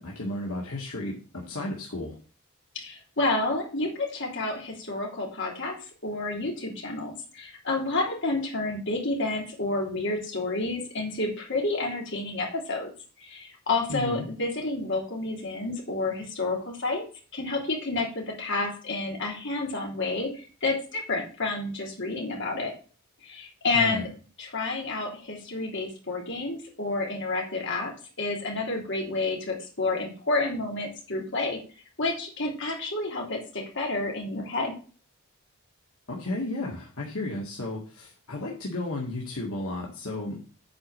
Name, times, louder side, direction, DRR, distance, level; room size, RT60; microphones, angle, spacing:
voice 1, 0.0-2.2 13.9-14.3 23.7-24.0 36.1-40.4, left 2 dB, 70° left, -2 dB, 1.9 m, -33 dB
voice 2, 2.7-12.9 13.2-17.0 17.3-22.7 23.2-24.1 24.4-27.9 28.2-31.6 32.0-34.7, left 2 dB, 55° left, -1 dB, 3.3 m, -30 dB
8.7 x 4.7 x 7.3 m, 0.38 s
head